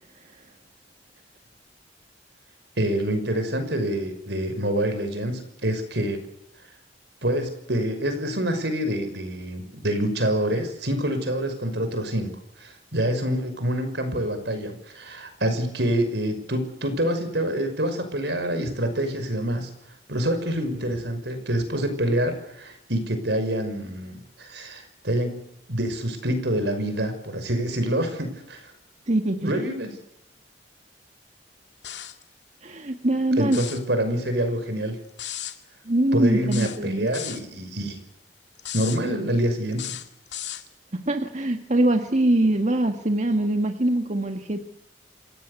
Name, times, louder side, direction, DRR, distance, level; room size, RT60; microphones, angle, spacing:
voice 1, 2.8-6.2 7.2-12.3 12.6-19.7 20.1-28.7 29.4-29.9 33.4-35.0 36.1-38.0 38.7-40.0, right 1 dB, 75° right, 8 dB, 5.9 m, -26 dB
voice 2, 29.1-29.6 32.6-33.6 35.9-37.1 40.9-44.6, right 1 dB, 40° right, 5 dB, 1.7 m, -23 dB
sound 1, 31.8-32.2 33.4-33.8 35.2-35.6 36.5-37.4 38.6-39.0 39.7-40.7, left 11 dB, 75° left, 2.2 m, -35 dB
27.0 x 17.5 x 8.3 m, 0.81 s
head